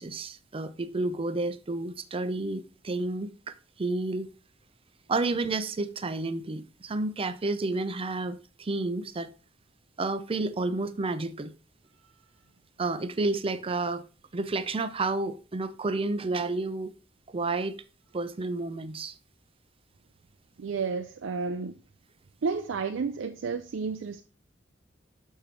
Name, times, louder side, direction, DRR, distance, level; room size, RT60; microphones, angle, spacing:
voice 1, 0.0-4.3 5.1-9.3 10.0-11.5 12.8-14.0 14.3-16.9 17.3-17.8 18.1-19.2, right 2 dB, 30° right, 0.5 m, -30 dB
voice 2, 20.6-21.8 22.4-24.2, right 5 dB, 90° right, 0.5 m, -31 dB
6.7 x 6.4 x 2.9 m
head